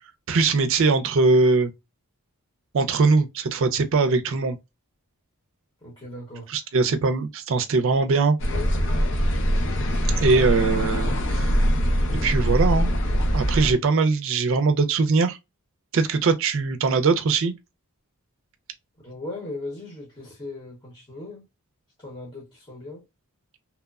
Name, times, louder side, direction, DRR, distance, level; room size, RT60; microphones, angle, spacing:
voice 1, 0.3-1.7 2.7-4.6 6.5-8.4 10.2-11.5 12.2-12.9 13.3-15.4 15.9-17.5, right 4 dB, 60° right, 0.4 m, -21 dB
voice 2, 5.8-6.5 19.0-21.4 22.0-23.0, left 2 dB, 20° left, 0.8 m, -38 dB
sound 1, 8.4-13.7, equal, 55° left, 0.5 m, -22 dB
3.0 x 2.0 x 2.3 m
head